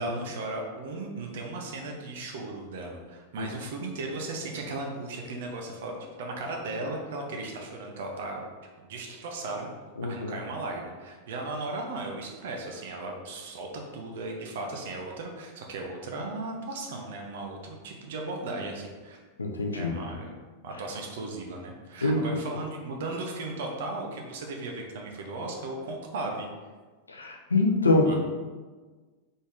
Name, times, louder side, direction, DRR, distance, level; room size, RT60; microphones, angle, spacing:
voice 1, 0.0-8.4 8.8-9.7 10.1-19.2 19.7-20.4 20.6-26.5 28.0-28.2, right 2 dB, 55° right, 1 dB, 0.7 m, -36 dB
voice 2, 10.0-10.3 19.4-20.1 22.0-22.3 27.1-28.2, left 2 dB, 75° left, 2 dB, 0.6 m, -25 dB
3.9 x 3.5 x 3.7 m, 1.4 s
figure-of-eight pair, 90°, 0 cm